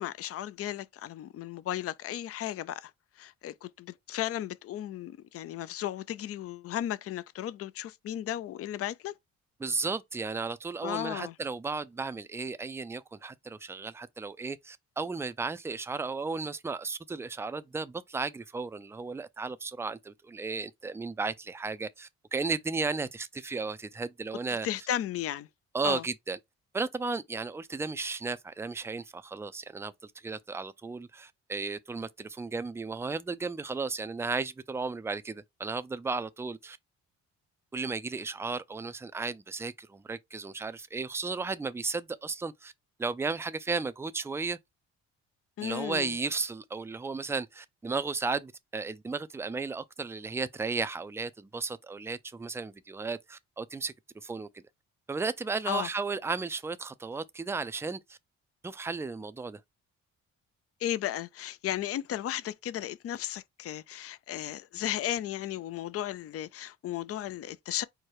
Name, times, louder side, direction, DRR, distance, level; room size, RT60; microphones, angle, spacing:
voice 1, 0.0-2.9 3.2-9.1 10.8-11.4 24.6-25.5 25.8-26.0 45.6-46.2 55.7-55.9 60.8-67.8, left 12 dB, 50° left, 0.5 m, -35 dB
voice 2, 9.6-24.7 25.7-26.4 26.7-36.8 37.7-42.7 43.0-44.6 45.6-53.9 54.2-54.5 55.1-58.2 58.6-59.6, right 4 dB, 10° right, 0.4 m, -34 dB
4.6 x 2.1 x 4.7 m
cardioid pair, 90°, 30 cm